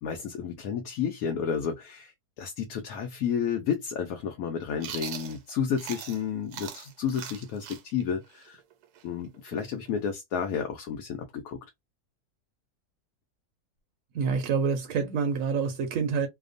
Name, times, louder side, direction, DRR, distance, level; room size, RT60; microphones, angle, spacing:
voice 1, 0.0-2.1 2.4-8.6 9.0-11.6, left 7 dB, 75° left, 1.0 m, -31 dB
Chewing mastication, 4.8-6.2 6.5-10.1, right 9 dB, 90° right, 1.1 m, -41 dB
voice 2, 14.1-16.3, right 5 dB, 70° right, 0.9 m, -27 dB
2.9 x 2.0 x 2.4 m
omnidirectional pair, 1.6 m